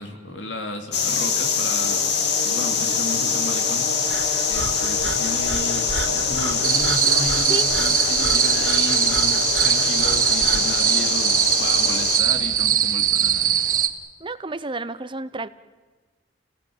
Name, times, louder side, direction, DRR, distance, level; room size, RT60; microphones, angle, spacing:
voice 1, 0.0-2.0 2.4-3.9 4.5-13.6, left 1 dB, 80° left, 5 dB, 3.3 m, -33 dB
sound 1, 0.9-12.2, left 5 dB, 65° left, 2.3 m, -24 dB
Breathing, 4.1-10.8, right 3 dB, 85° right, 3.6 m, -33 dB
sound 2, 6.6-13.9, right 10 dB, 50° right, 1.4 m, -21 dB
voice 2, 14.2-15.5, right 2 dB, 25° right, 14 dB, 0.8 m, -30 dB
29.5 x 18.0 x 9.0 m, 1.3 s
head